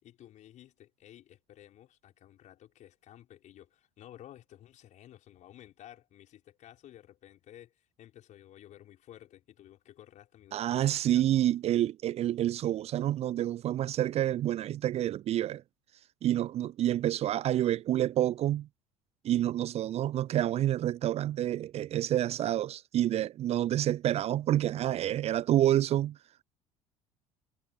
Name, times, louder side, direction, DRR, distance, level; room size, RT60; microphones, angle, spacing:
voice 1, 0.0-7.7 8.0-11.2, left 12 dB, 45° left, 6.2 m, -53 dB
voice 2, 10.5-15.6 16.2-18.7 19.2-26.2, right 12 dB, 35° right, 0.7 m, -28 dB
figure-of-eight pair, 65°, 17 cm